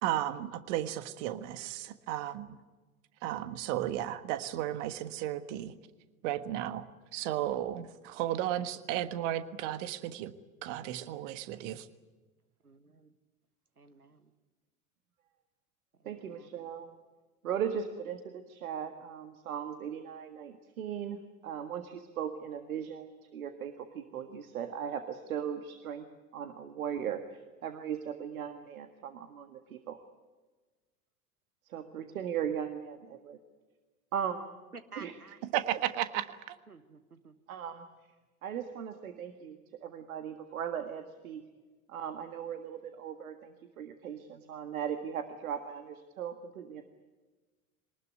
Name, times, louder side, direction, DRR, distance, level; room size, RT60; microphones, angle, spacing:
voice 1, 0.0-2.6 3.2-5.7 6.2-6.8 7.1-10.3 10.6-11.9 35.5-36.6, right 12 dB, 55° right, 12 dB, 1.5 m, -34 dB
voice 2, 12.6-13.1 13.8-14.3 16.0-16.7 34.7-35.4 36.7-37.3, right 4 dB, 90° right, 12 dB, 1.5 m, -52 dB
voice 3, 16.0-16.9 17.4-26.1 26.3-30.0 31.7-33.4 34.1-34.4 35.0-35.2 37.5-37.9 38.4-41.4 41.9-46.8, right 8 dB, 70° right, 8 dB, 1.8 m, -38 dB
23.5 x 19.5 x 9.4 m, 1.3 s
figure-of-eight pair, 80°, 44 cm